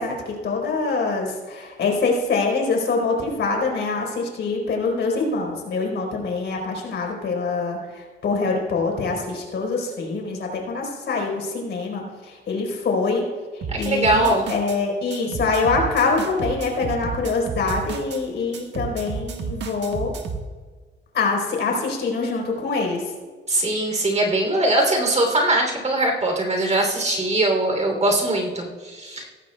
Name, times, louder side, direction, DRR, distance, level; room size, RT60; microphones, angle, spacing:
voice 1, 0.0-13.2 13.5-20.1 21.1-23.0, left 3 dB, 60° left, 0 dB, 4.3 m, -24 dB
sound 1, 13.6-14.8 15.1-18.2 18.5-20.5, right 4 dB, 60° right, 1.5 m, -31 dB
voice 2, 13.7-14.5 23.5-29.3, right 1 dB, 35° right, 2 dB, 3.2 m, -21 dB
17.5 x 15.0 x 2.3 m, 1.4 s
cardioid pair, 90°, 20 cm